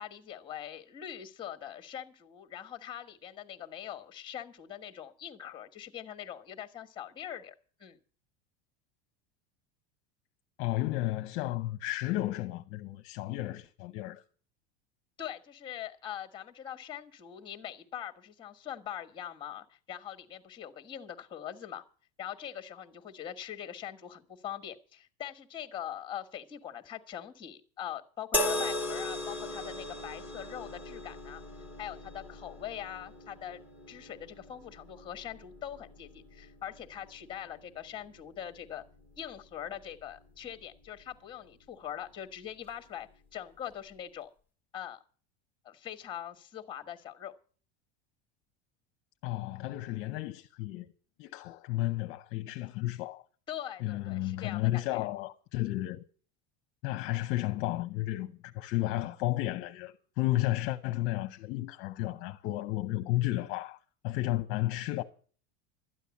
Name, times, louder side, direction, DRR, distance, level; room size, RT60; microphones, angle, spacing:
voice 1, 0.0-7.5 7.8-8.0 15.2-21.8 22.2-31.4 31.8-33.6 33.9-38.8 39.2-44.3 44.7-45.0 45.6-47.3 53.5-55.0, left 10 dB, 15° left, 1.3 m, -42 dB
voice 2, 10.6-14.2 49.2-50.9 51.2-53.2 53.8-56.0 56.8-63.8 64.0-65.0, left 16 dB, 40° left, 0.8 m, -32 dB
sound 1, 28.3-41.7 42.6-42.8, left 1 dB, 5° right, 1.1 m, -39 dB
12.5 x 10.0 x 7.1 m
cardioid pair, 175°, 33 cm